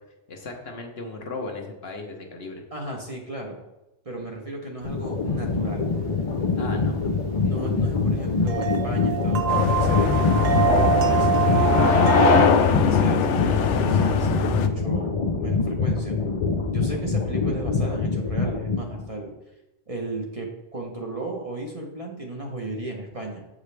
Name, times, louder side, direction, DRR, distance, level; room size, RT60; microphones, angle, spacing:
voice 1, 0.3-2.6 6.6-6.9, left 2 dB, 60° left, 2 dB, 1.2 m, -36 dB
voice 2, 2.7-3.6 4.0-5.9 7.4-11.8 12.2-16.2 16.7-19.3 19.9-23.5, right 2 dB, 35° right, 0 dB, 0.8 m, -35 dB
sound 1, 4.8-19.1, left 4 dB, 40° left, 0.5 m, -25 dB
sound 2, 4.8-12.4, right 12 dB, 65° right, 0.8 m, -26 dB
sound 3, 9.5-14.7, left 6 dB, 90° left, 0.9 m, -21 dB
7.8 x 5.0 x 3.3 m, 0.96 s
omnidirectional pair, 1.2 m